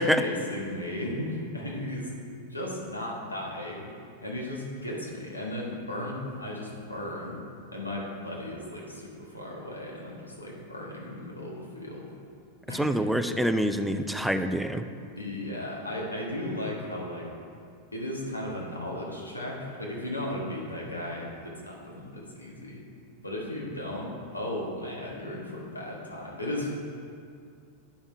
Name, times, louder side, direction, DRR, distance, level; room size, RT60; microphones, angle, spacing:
voice 1, 0.2-2.1 2.5-3.9 4.2-7.4 7.7-12.1 12.7-13.1 15.1-17.3 17.9-22.8 23.2-26.7, left 1 dB, 85° left, -3 dB, 1.5 m, -35 dB
voice 2, 12.7-14.8, equal, ahead, 8 dB, 0.4 m, -26 dB
9.7 x 5.4 x 4.6 m, 2.3 s
figure-of-eight pair, 90°, 0 cm